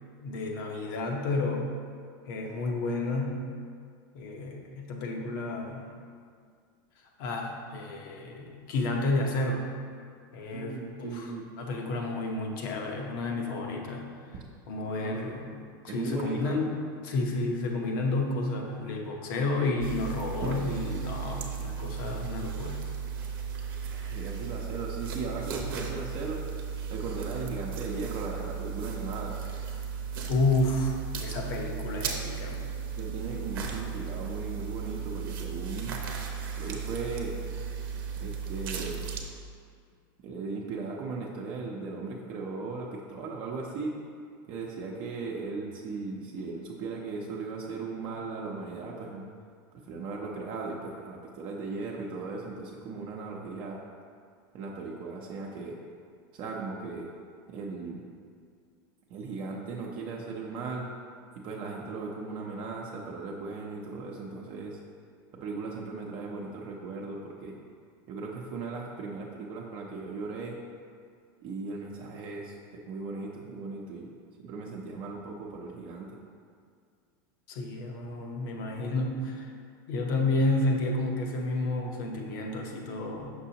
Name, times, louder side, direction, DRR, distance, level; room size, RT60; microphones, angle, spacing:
voice 1, 0.2-1.7 2.3-3.5 4.1-5.9 7.2-9.6 10.3-14.0 14.7-15.5 15.8-16.7 17.0-22.8 30.3-32.7 77.5-79.5 79.9-83.3, left 2 dB, 70° left, 1 dB, 1.0 m, -31 dB
voice 2, 10.5-11.4 15.0-15.3 15.9-16.6 17.2-17.4 23.9-26.4 26.9-29.4 33.0-35.9 36.5-37.3 38.2-39.0 40.2-43.9 44.5-49.3 49.7-53.8 54.5-55.7 56.3-57.1 57.5-58.0 59.1-60.9 61.4-64.8 65.3-67.5 68.1-70.6 71.4-74.1 74.4-76.2, right 4 dB, 45° right, -2 dB, 0.7 m, -37 dB
sound 1, 19.8-39.2, right 6 dB, 75° right, 0.8 m, -35 dB
6.1 x 6.0 x 2.9 m, 2.1 s
supercardioid pair, 130°, 12 cm